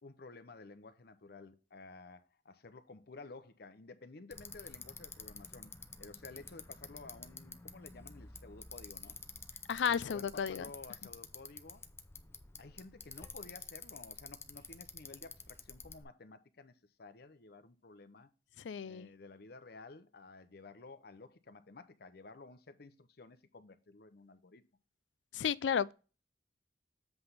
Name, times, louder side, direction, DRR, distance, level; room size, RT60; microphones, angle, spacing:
voice 1, 0.0-5.7 6.0-9.2 9.9-11.8 12.6-18.3 18.8-24.6, left 3 dB, 60° left, 0.7 m, -53 dB
Bicycle, 4.3-16.0, left 4 dB, 15° left, 0.5 m, -50 dB
voice 2, 9.7-10.7 18.6-19.1 25.3-25.9, left 7 dB, 90° left, 0.4 m, -33 dB
7.9 x 3.4 x 5.5 m
head